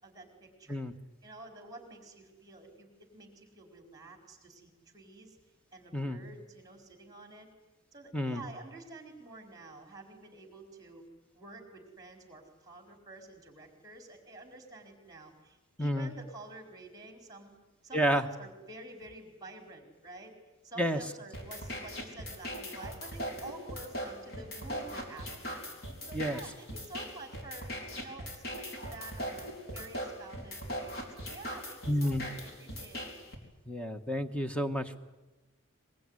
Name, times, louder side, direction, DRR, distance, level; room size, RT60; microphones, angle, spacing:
voice 1, 0.0-0.8 1.2-5.4 5.7-7.5 7.9-11.0 11.3-17.6 17.8-20.3 20.6-25.6 26.0-33.2, right 2 dB, 15° right, 4 dB, 4.6 m, -49 dB
voice 2, 15.8-16.1 17.9-18.3 20.8-21.0 26.1-26.4 31.9-32.2 33.7-35.0, equal, 5° left, 7 dB, 1.2 m, -30 dB
sound 1, 21.3-33.3, equal, 50° left, 4.4 m, -40 dB
22.5 x 22.5 x 9.8 m, 1.1 s
head